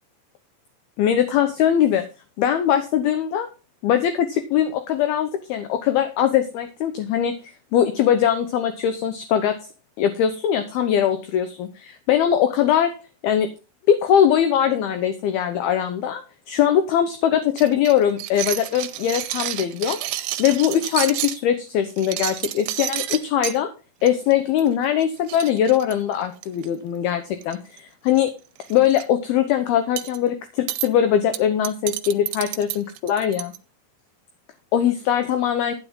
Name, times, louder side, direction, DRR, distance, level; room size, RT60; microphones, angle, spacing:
voice 1, 1.0-2.0 2.4-3.5 3.8-9.5 10.0-12.9 13.2-13.5 13.9-23.7 24.0-28.3 28.7-33.5 34.7-35.7, left 9 dB, 75° left, 8 dB, 2.5 m, -21 dB
sound 1, 17.6-21.4 21.9-23.6 24.1-24.3 24.6-24.7 25.0-25.1 25.3-26.7 27.4-27.8 28.1-28.2 28.6-29.0 30.0-30.2 30.7-30.9 31.3-33.6, right 15 dB, 80° right, 2.9 m, -30 dB
12.5 x 9.7 x 3.7 m, 0.31 s
omnidirectional pair, 5.4 m